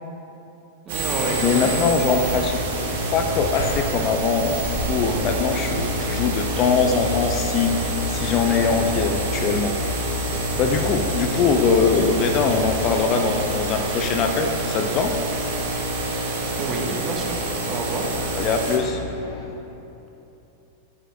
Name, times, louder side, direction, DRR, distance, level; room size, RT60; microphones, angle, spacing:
voice 1, 0.9-1.7 8.4-8.8 16.6-17.4 17.7-18.1, right 3 dB, 25° right, 0 dB, 1.4 m, -29 dB
sound 1, 0.9-18.8, right 1 dB, 55° right, 1.5 m, -27 dB
sound 2, 1.2-19.5, left 2 dB, 60° left, 1.1 m, -39 dB
voice 2, 1.4-2.6 3.1-9.7 10.6-15.1 18.4-19.0, left 5 dB, 35° left, 5 dB, 0.6 m, -22 dB
sound 3, 2.5-13.5, left 1 dB, 85° left, 1.4 m, -35 dB
13.5 x 9.7 x 2.4 m, 3.0 s
figure-of-eight pair, 90°, 0 cm